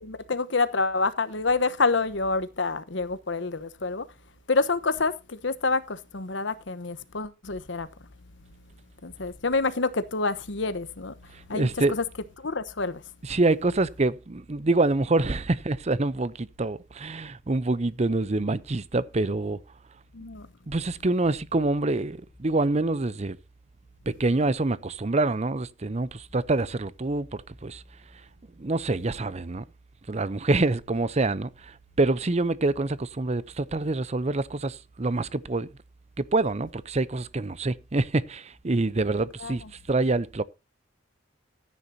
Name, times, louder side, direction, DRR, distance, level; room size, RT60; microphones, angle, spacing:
voice 1, 0.0-4.1 4.5-7.9 9.0-11.1 11.5-12.0 12.4-13.0 20.1-20.5 39.4-39.6, left 3 dB, 65° left, 1.1 m, -27 dB
voice 2, 11.3-11.9 13.2-19.6 20.7-23.4 24.1-27.8 28.6-29.6 30.1-35.7 36.2-40.4, right 2 dB, 35° right, 0.6 m, -26 dB
14.0 x 9.8 x 2.8 m
head